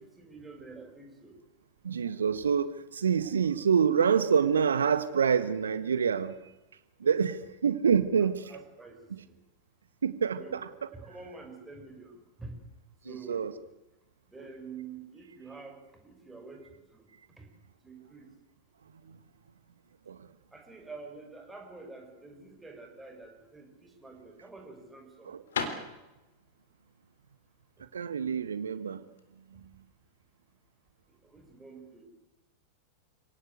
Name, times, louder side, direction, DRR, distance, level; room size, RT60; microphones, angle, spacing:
voice 1, 0.0-1.4 7.0-7.1 8.5-9.0 10.4-10.6 10.9-12.1 12.4-12.5 13.0-13.5 14.3-16.6 16.9-17.1 17.4-17.5 17.8-18.3 20.5-25.3 31.2-32.1, right 4 dB, 10° right, 3 dB, 6.9 m, -47 dB
voice 2, 1.8-6.3 7.0-8.6 9.1-9.2 10.0-10.9 13.0-13.5 19.1-19.2 20.1-20.3 25.2-25.4 27.9-29.0 29.5-29.7, right 7 dB, 70° right, 13 dB, 1.8 m, -27 dB
sound 1, 23.7-29.3, left 5 dB, 65° left, 3.6 m, -40 dB
29.5 x 18.0 x 8.2 m, 1.0 s
figure-of-eight pair, 90°, 0 cm